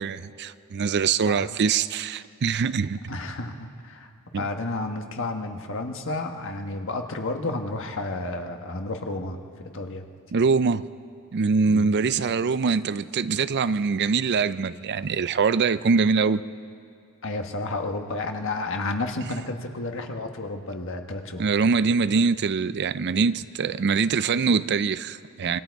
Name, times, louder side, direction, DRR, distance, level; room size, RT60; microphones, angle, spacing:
voice 1, 0.0-3.0 4.3-4.5 10.3-10.8 11.3-16.4 21.4-25.6, right 5 dB, 50° right, 0.4 m, -23 dB
voice 2, 1.3-1.6 3.1-10.1 11.7-11.9 17.2-21.6, left 2 dB, 60° left, 1.4 m, -31 dB
26.0 x 23.5 x 4.7 m
head